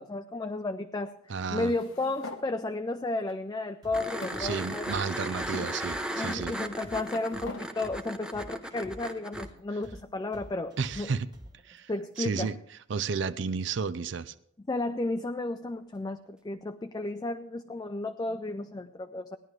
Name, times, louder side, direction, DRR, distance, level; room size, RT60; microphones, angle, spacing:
voice 1, 0.0-1.2 1.5-4.9 6.1-11.2 11.9-12.5 14.6-19.4, left 2 dB, 20° left, 0.4 m, -33 dB
voice 2, 1.3-1.7 4.4-6.5 10.8-11.3 11.6-11.9 12.2-12.6 12.9-14.3, right 5 dB, 65° right, 0.5 m, -32 dB
sound 1, 1.6-2.4 3.3-3.4 4.2-5.0 5.5-5.7 6.6-7.7, left 2 dB, 85° left, 1.1 m, -43 dB
sound 2, 3.8-11.8, equal, 20° right, 1.5 m, -48 dB
sound 3, 3.9-9.5 12.2-12.3, right 1 dB, 5° right, 0.7 m, -36 dB
17.5 x 10.5 x 3.2 m
head